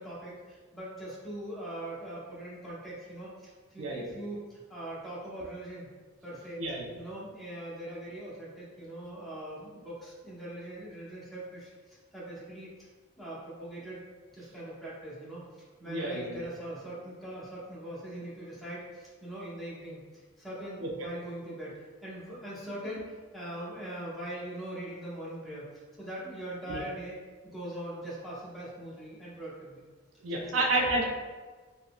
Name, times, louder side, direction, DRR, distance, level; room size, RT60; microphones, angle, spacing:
voice 1, 0.0-5.9 6.2-6.6 6.9-12.7 13.2-14.0 14.3-15.4 15.8-25.7 26.0-27.2 27.4-29.8 30.4-30.9, right 1 dB, ahead, -9 dB, 0.8 m, -41 dB
voice 2, 3.8-4.1 6.6-6.9 15.9-16.4 20.8-20.9 26.7-26.8 30.2-31.0, right 2 dB, 70° right, 0 dB, 0.4 m, -30 dB
3.7 x 2.0 x 2.2 m, 1.4 s
head